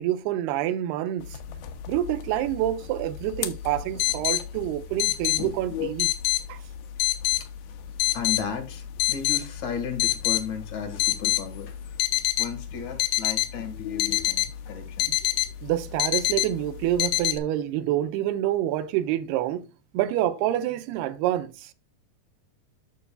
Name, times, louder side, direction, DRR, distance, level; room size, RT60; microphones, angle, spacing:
voice 1, 0.0-1.4 1.9-6.1 6.5-6.6 15.6-19.7 19.9-21.7, right 12 dB, 85° right, 2.7 m, -27 dB
sound 1, 1.3-17.4, left 15 dB, 85° left, 2.9 m, -28 dB
voice 2, 8.1-12.0 12.4-15.1, left 7 dB, 55° left, 2.7 m, -35 dB
11.5 x 6.7 x 2.3 m
omnidirectional pair, 4.6 m